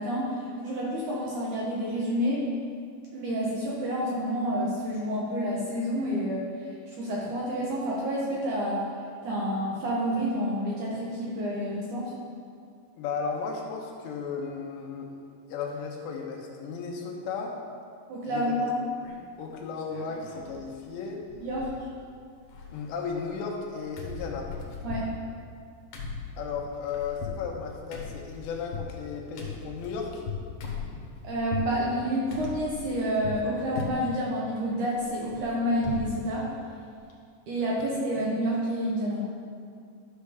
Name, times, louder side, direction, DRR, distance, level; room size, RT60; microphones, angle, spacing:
voice 1, 0.0-2.5 3.1-8.9 9.2-12.1 18.1-18.8 21.4-21.7 24.8-25.1 31.2-36.5 37.5-39.3, equal, 75° right, -5 dB, 1.8 m, -29 dB
voice 2, 13.0-15.1 15.4-17.6 18.2-18.5 19.4-21.2 22.7-24.5 26.4-30.2, left 5 dB, 85° left, 0 dB, 3.2 m, -35 dB
sound 1, 19.0-19.4 19.8-20.6 20.8-20.9 21.2-22.1 22.3-23.7 24.0-31.7 32.3-33.5 33.8-34.2 34.6-36.2 36.5-36.6 36.9-37.1, left 5 dB, 65° left, 2.2 m, -38 dB
12.0 x 6.5 x 3.5 m, 2.3 s
omnidirectional pair, 5.0 m